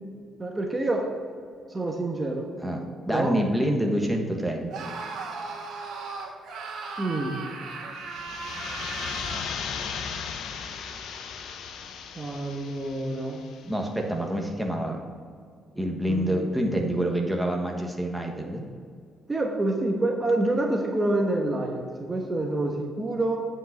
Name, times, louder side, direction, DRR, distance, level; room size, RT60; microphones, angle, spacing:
voice 1, 0.4-1.1 1.7-2.5 3.1-3.4 7.0-7.4 12.2-13.4 16.1-16.5 19.3-23.5, right 2 dB, 20° right, 0 dB, 1.2 m, -27 dB
voice 2, 2.6-4.8 13.6-15.0 15.7-18.6, equal, ahead, 1 dB, 1.4 m, -27 dB
Screaming, 4.7-9.5, right 4 dB, 75° right, 2.1 m, -37 dB
sound 1, 8.0-13.6, left 6 dB, 75° left, 0.8 m, -36 dB
9.0 x 5.5 x 5.9 m, 2.1 s
cardioid pair, 90°, 0 cm